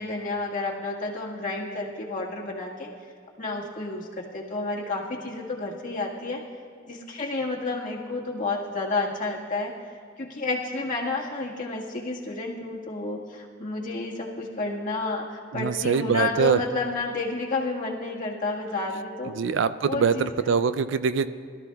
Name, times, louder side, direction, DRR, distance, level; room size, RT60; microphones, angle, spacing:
voice 1, 0.0-2.9 3.4-6.4 6.8-9.7 10.2-19.3 19.8-20.6, left 3 dB, 45° left, -3 dB, 1.7 m, -30 dB
voice 2, 15.5-16.6 19.3-21.3, right 6 dB, 70° right, 12 dB, 0.4 m, -23 dB
21.5 x 13.0 x 2.3 m, 2.1 s
head